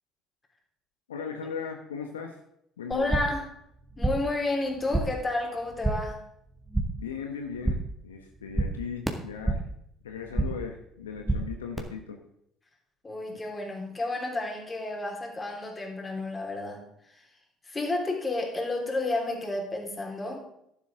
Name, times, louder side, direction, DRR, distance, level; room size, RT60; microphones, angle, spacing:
voice 1, 1.1-2.4 2.8-3.2 7.0-9.7 10.0-12.2, left 6 dB, 85° left, 4 dB, 1.0 m, -37 dB
voice 2, 2.9-3.5 4.0-6.2 13.0-17.3 17.7-20.5, left 2 dB, 25° left, 1 dB, 3.6 m, -31 dB
sound 1, 2.9-3.5 3.7-4.4 4.6-5.3 5.6-6.2 6.5-7.1 7.4-8.0 8.3-9.8 10.1-10.7 11.0-11.8, right 2 dB, 10° right, 2.0 m, -30 dB
11.5 x 11.0 x 3.7 m, 0.74 s
hypercardioid pair, 60°, 0 cm